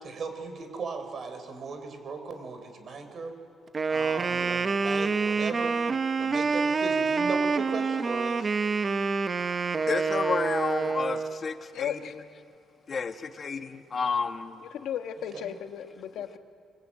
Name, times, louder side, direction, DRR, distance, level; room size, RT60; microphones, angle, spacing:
voice 1, 0.0-3.3 3.9-5.8 6.2-8.5 15.3-15.5, right 4 dB, 50° right, 7 dB, 4.6 m, -37 dB
Wind instrument woodwind instrument, 3.7-11.4, right 4 dB, 35° right, 0.8 m, -27 dB
voice 2, 9.4-12.2 12.9-14.6, left 5 dB, 45° left, 7 dB, 1.6 m, -31 dB
voice 3, 11.7-12.1 14.6-16.4, left 9 dB, 80° left, 7 dB, 1.5 m, -35 dB
25.0 x 21.5 x 8.9 m, 2.3 s
cardioid pair, 90°, 0 cm